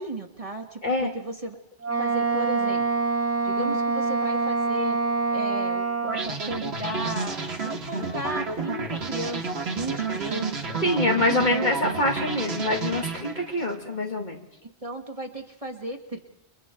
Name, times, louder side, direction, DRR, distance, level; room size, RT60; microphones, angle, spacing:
voice 1, 0.0-1.6 2.0-2.9 3.4-5.0 5.3-11.4 14.6-16.2, right 1 dB, 30° right, 3 dB, 1.8 m, -35 dB
Wind instrument woodwind instrument, 1.8-6.4, right 4 dB, 15° right, 0.8 m, -25 dB
sound 1, 6.1-13.8, right 4 dB, 75° right, 1.6 m, -31 dB
voice 2, 10.8-14.4, left 1 dB, 45° left, 1 dB, 2.6 m, -25 dB
29.5 x 23.0 x 4.6 m, 0.77 s
omnidirectional pair, 1.1 m